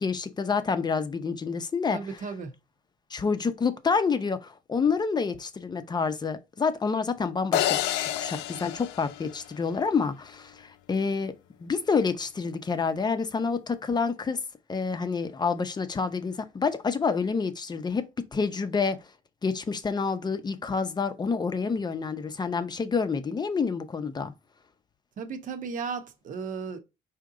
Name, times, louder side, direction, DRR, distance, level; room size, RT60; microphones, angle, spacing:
voice 1, 0.0-2.0 3.1-7.8 8.2-11.3 11.6-14.4 14.7-19.0 19.4-24.3, left 5 dB, 25° left, 0.6 m, -28 dB
voice 2, 1.9-2.5 25.2-26.8, right 5 dB, 50° right, 0.9 m, -35 dB
sound 1, 7.5-9.9, left 12 dB, 85° left, 0.4 m, -29 dB
4.9 x 2.8 x 3.7 m
cardioid pair, 110°, 17 cm